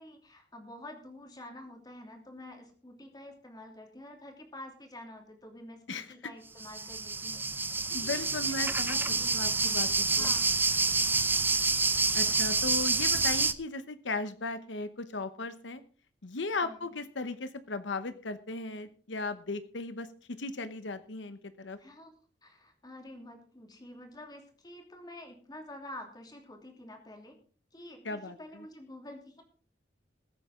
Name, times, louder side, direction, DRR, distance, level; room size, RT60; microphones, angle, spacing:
voice 1, 0.0-9.9 10.1-10.5 16.6-16.9 21.8-22.1 22.4-27.4 27.7-29.4, left 1 dB, 20° left, 3 dB, 2.9 m, -48 dB
sound 1, 6.6-13.5, right 3 dB, 10° right, 0.7 m, -28 dB
voice 2, 7.9-9.0 9.3-10.3 12.1-15.8 16.2-20.1 20.4-21.8 28.0-28.7, left 3 dB, 90° left, 11 dB, 1.0 m, -36 dB
21.0 x 8.2 x 3.7 m, 0.41 s
head